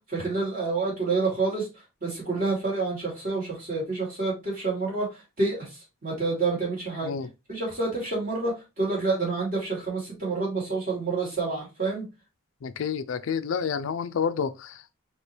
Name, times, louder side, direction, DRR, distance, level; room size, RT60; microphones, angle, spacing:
voice 1, 0.1-1.7 2.0-5.1 5.4-5.7 6.0-7.1 7.5-12.0, right 3 dB, 45° right, 2.7 m, -28 dB
voice 2, 12.6-14.9, left 6 dB, 75° left, 0.4 m, -29 dB
4.4 x 2.9 x 3.2 m
head